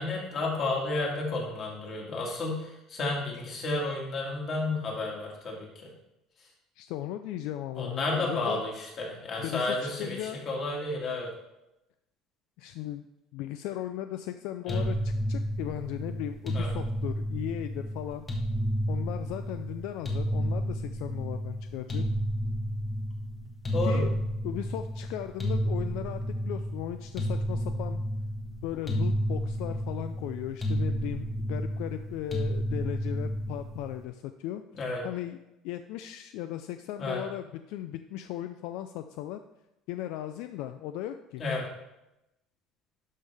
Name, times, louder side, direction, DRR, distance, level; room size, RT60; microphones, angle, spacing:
voice 1, 0.0-5.9 7.8-11.3 14.7-14.8 16.5-16.7 23.7-24.0 34.8-35.0 37.0-37.2 41.4-41.6, left 2 dB, 30° left, -1 dB, 2.1 m, -32 dB
voice 2, 6.8-8.6 9.4-10.4 12.6-13.0 13.3-18.3 18.9-22.0 23.8-24.1 24.4-28.0 28.6-34.6 35.0-35.4 35.6-39.4 39.9-41.4, left 12 dB, 70° left, 9 dB, 0.4 m, -37 dB
sound 1, 14.7-34.0, equal, 15° left, 1.2 m, -31 dB
12.0 x 5.4 x 3.4 m, 0.90 s
cardioid pair, 175°, 0 cm